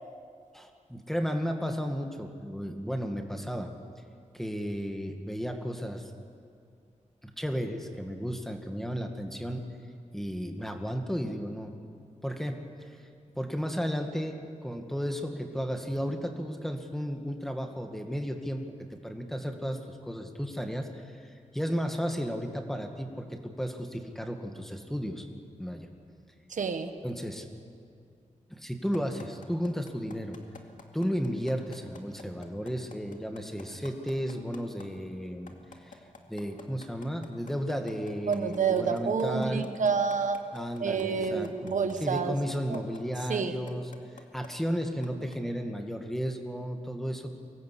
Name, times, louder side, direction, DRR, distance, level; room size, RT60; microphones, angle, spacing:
voice 1, 0.5-3.7 4.3-6.1 7.2-9.6 10.1-11.8 12.2-13.0 13.4-25.2 25.6-25.9 27.0-27.4 28.5-30.4 30.9-35.5 35.8-36.0 36.3-39.7 40.5-43.9 44.3-47.4, equal, 5° left, 4 dB, 1.9 m, -34 dB
voice 2, 26.5-26.9 38.3-40.4 40.8-42.4 42.7-42.8 43.3-43.5, right 5 dB, 80° right, 8 dB, 1.4 m, -28 dB
sound 1, 28.9-34.9 35.3-41.9 42.5-43.2 43.7-44.5 45.0-45.3, left 4 dB, 85° left, 2.3 m, -48 dB
24.0 x 19.0 x 8.5 m, 2.3 s
wide cardioid pair, 130°, 13 cm